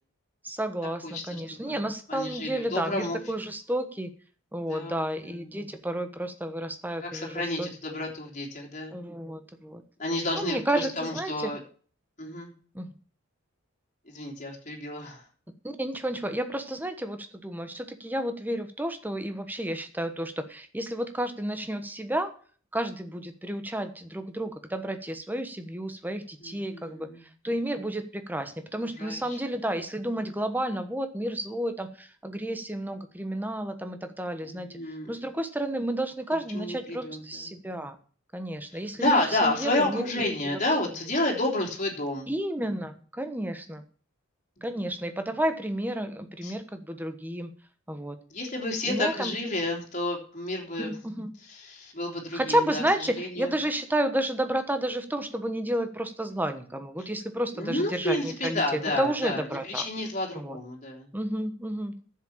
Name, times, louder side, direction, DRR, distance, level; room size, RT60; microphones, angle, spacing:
voice 1, 0.4-4.1 4.5-7.7 8.9-9.8 10.3-11.5 12.7-12.9 15.6-22.3 22.7-34.7 35.1-38.0 38.3-40.0 40.4-40.6 42.3-43.8 44.6-47.5 47.9-48.2 48.8-49.4 50.8-51.3 52.3-58.6 59.0-59.8 60.3-60.6 61.1-61.9, right 1 dB, 10° right, 8 dB, 1.1 m, -31 dB
voice 2, 1.0-1.8 2.1-3.2 4.7-5.3 7.0-9.0 10.0-11.6 12.2-12.5 14.1-15.2 26.4-27.2 29.0-29.4 34.4-35.2 36.5-37.6 38.7-42.3 46.4-46.5 48.3-50.9 51.5-53.5 57.6-61.1, left 1 dB, 40° left, 0 dB, 3.3 m, -31 dB
10.0 x 7.6 x 7.3 m, 0.43 s
head